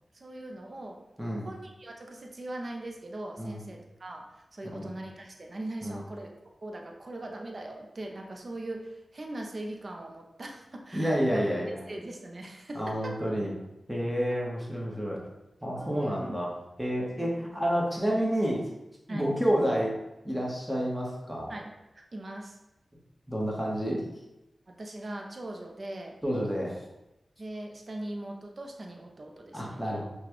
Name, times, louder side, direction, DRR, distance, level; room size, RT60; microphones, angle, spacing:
voice 1, 0.1-1.0 1.4-6.3 6.6-11.5 11.9-13.1 15.8-16.4 17.2-17.5 19.1-19.3 21.5-22.6 24.7-26.2 27.4-29.8, right 1 dB, 50° right, 2 dB, 0.6 m, -40 dB
voice 2, 10.9-11.8 12.7-13.5 13.9-15.2 15.6-16.5 16.8-18.7 19.1-19.9 20.2-21.5 23.3-24.0 26.2-26.8 29.5-30.0, equal, 5° right, -4 dB, 1.2 m, -29 dB
5.8 x 2.3 x 3.1 m, 0.94 s
cardioid pair, 45°, 0 cm